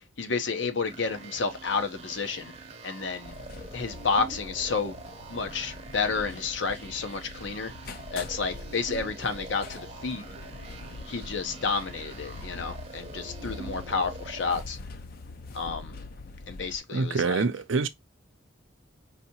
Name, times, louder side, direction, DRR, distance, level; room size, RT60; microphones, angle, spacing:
voice 1, 0.2-2.5 2.8-3.3 3.7-5.0 5.3-7.7 8.1-10.2 11.1-14.8 15.5-15.9 16.5-17.4, left 4 dB, 75° left, 0.8 m, -30 dB
sound 1, 0.8-14.6, right 3 dB, 30° right, 0.7 m, -45 dB
sound 2, 3.2-16.8, left 3 dB, 50° left, 0.5 m, -43 dB
voice 2, 16.9-17.9, right 4 dB, 85° right, 0.5 m, -26 dB
4.8 x 2.8 x 2.8 m
head